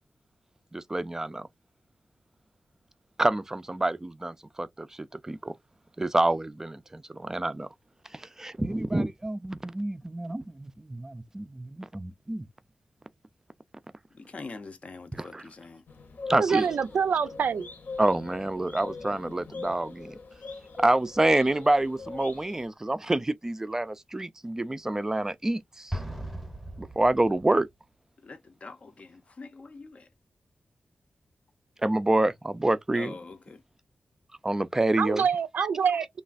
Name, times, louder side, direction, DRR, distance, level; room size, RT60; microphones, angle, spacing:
voice 1, 0.7-1.5 3.2-5.6 6.0-7.7 8.1-12.4 15.2-15.4 16.3-16.7 18.0-20.2 20.8-26.0 26.8-27.7 31.8-33.1 34.4-35.2 35.6-35.7, right 2 dB, 15° right, 0.3 m, -27 dB
voice 2, 14.1-15.8 28.2-30.1 32.9-33.6, left 3 dB, 45° left, 0.5 m, -44 dB
sound 1, 15.9-22.7, left 4 dB, 70° left, 0.9 m, -41 dB
voice 3, 16.3-17.7 35.0-36.1, right 6 dB, 85° right, 0.4 m, -26 dB
Explosion, 25.9-27.6, right 1 dB, ahead, 0.8 m, -37 dB
3.2 x 2.3 x 2.4 m
wide cardioid pair, 140°, 3 cm